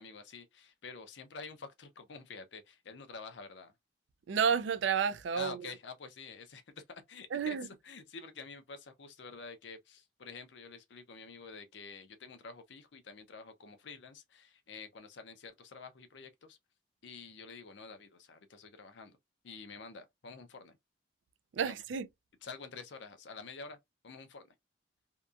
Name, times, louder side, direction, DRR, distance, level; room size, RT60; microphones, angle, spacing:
voice 1, 0.0-3.7 5.3-16.6 17.0-19.2 19.4-20.8 21.6-21.7 22.4-23.8 24.0-24.5, left 4 dB, 75° left, 0.6 m, -48 dB
voice 2, 4.3-5.6 7.3-7.7 21.5-22.1, right 7 dB, 80° right, 0.4 m, -30 dB
2.7 x 2.2 x 2.4 m
head